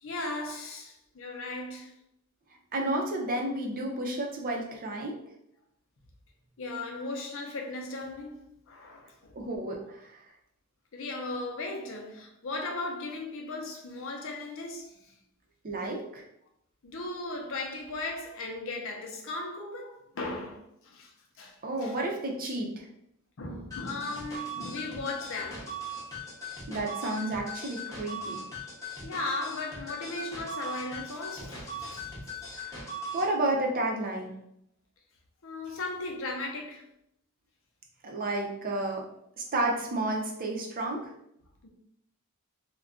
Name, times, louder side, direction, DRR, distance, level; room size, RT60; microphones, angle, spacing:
voice 1, 0.0-1.9 6.6-9.3 10.9-15.1 16.8-22.0 23.4-25.8 29.0-32.2 35.4-36.9 41.6-41.7, left 2 dB, 60° left, 0.6 m, -37 dB
voice 2, 2.7-5.2 9.3-10.2 15.6-16.2 21.6-22.9 26.7-28.4 32.6-34.3 38.0-39.0 39.4-41.1, right 2 dB, 40° right, 0.6 m, -31 dB
sound 1, 23.7-33.3, equal, 15° left, 0.7 m, -39 dB
2.4 x 2.2 x 3.6 m
head